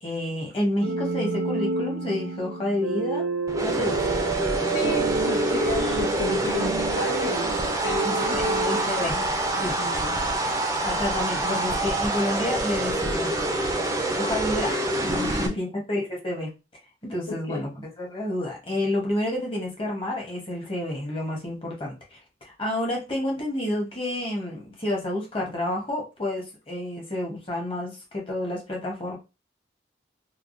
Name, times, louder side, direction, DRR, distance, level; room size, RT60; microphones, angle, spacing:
voice 1, 0.0-3.2 3.6-4.0 8.0-9.1 9.6-9.7 10.8-13.3 14.2-16.5 17.0-29.2, left 1 dB, 30° left, 0.9 m, -29 dB
sound 1, 0.8-9.8, right 3 dB, 85° right, 0.5 m, -30 dB
sound 2, 3.5-15.5, right 1 dB, 15° right, 0.4 m, -26 dB
voice 2, 4.7-7.6 7.8-9.3 9.5-10.2 15.2-15.5 17.3-17.6, left 2 dB, 80° left, 0.7 m, -33 dB
3.3 x 2.1 x 2.5 m
head